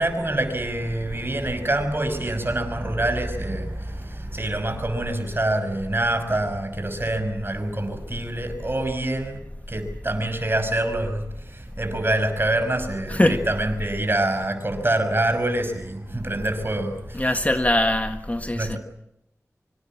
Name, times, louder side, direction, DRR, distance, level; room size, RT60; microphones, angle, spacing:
voice 1, 0.0-9.4 9.7-17.7 18.5-18.8, right 1 dB, 40° right, 5.8 m, -26 dB
voice 2, 13.1-13.4 17.1-18.8, left 1 dB, 25° left, 1.7 m, -22 dB
25.5 x 25.0 x 7.4 m
wide cardioid pair, 50°, 6 cm